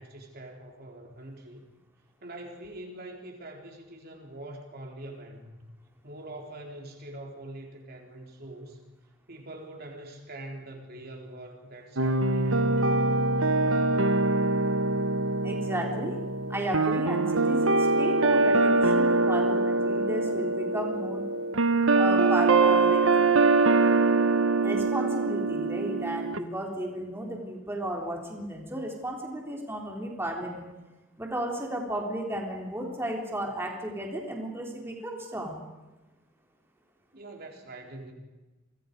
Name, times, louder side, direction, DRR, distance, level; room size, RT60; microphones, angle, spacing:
voice 1, 0.0-1.7 2.2-5.6 6.0-8.8 9.3-12.5 37.1-38.1, right 1 dB, 50° right, 2 dB, 3.7 m, -44 dB
sound 1, 12.0-26.4, right 3 dB, 85° right, 1.1 m, -24 dB
voice 2, 15.4-16.2 16.5-21.3 21.9-23.1 24.6-30.7 31.2-35.6, right 1 dB, 10° right, 0 dB, 3.9 m, -34 dB
30.0 x 25.0 x 5.4 m, 1.1 s
head